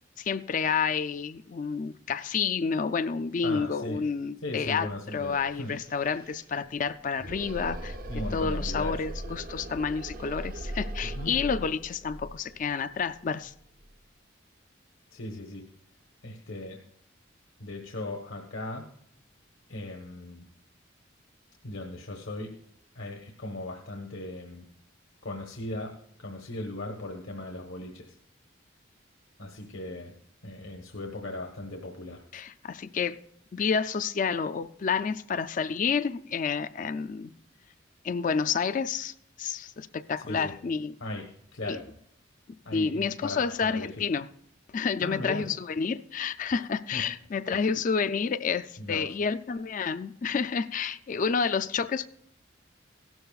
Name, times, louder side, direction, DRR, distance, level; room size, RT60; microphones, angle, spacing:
voice 1, 0.2-13.5 32.3-33.2 33.5-37.3 38.0-40.9 41.6-41.8 42.7-44.3 44.7-52.1, left 5 dB, 40° left, 0.3 m, -29 dB
voice 2, 3.4-4.0 4.4-5.7 8.1-9.0 11.1-11.3 15.1-15.6 16.2-16.8 17.6-18.8 19.7-20.5 21.6-22.5 22.9-24.7 25.2-25.9 26.2-28.2 29.4-30.1 30.4-32.2 40.2-40.5 41.0-41.9 42.6-43.9 45.0-45.4 46.9-47.0 47.5-47.7 48.8-49.1, left 1 dB, 75° left, 1.1 m, -37 dB
sound 1, 5.1-13.9, right 1 dB, 45° right, 0.6 m, -39 dB
16.0 x 12.5 x 2.4 m
head